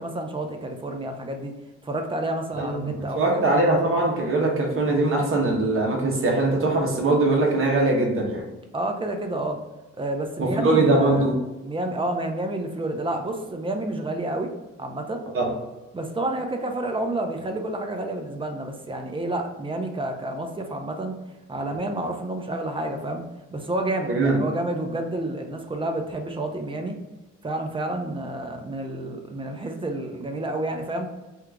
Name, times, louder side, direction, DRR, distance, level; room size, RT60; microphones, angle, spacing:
voice 1, 0.0-1.5 1.8-3.4 8.7-9.6 10.0-11.3 11.6-14.5 14.8-15.2 15.9-21.1 21.5-23.2 23.5-27.0 27.4-31.1, right 1 dB, 15° right, 4 dB, 0.5 m, -29 dB
voice 2, 2.6-8.5 10.4-11.4 15.3-15.5 24.1-24.4, right 2 dB, 45° right, 0 dB, 0.9 m, -21 dB
2.8 x 2.4 x 3.4 m, 1.1 s
cardioid pair, 90°, 30 cm